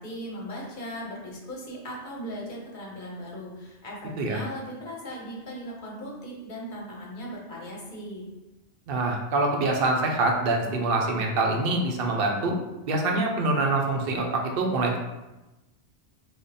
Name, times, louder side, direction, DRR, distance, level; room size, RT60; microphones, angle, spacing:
voice 1, 0.0-8.3, equal, 45° left, -4 dB, 0.9 m, -38 dB
voice 2, 8.9-12.6 12.9-15.0, right 2 dB, 60° right, 1 dB, 0.7 m, -25 dB
3.3 x 2.1 x 4.0 m, 1.0 s
omnidirectional pair, 1.2 m